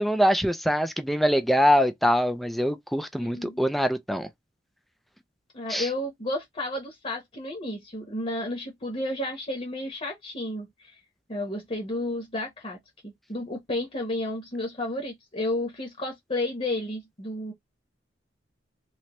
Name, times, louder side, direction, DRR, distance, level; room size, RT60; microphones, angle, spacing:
voice 1, 0.0-4.3 5.7-5.9, equal, ahead, 0.4 m, -23 dB
voice 2, 3.2-3.7 5.5-11.0 11.3-12.8 13.0-17.5, left 1 dB, 35° left, 1.0 m, -32 dB
3.2 x 2.9 x 3.0 m
head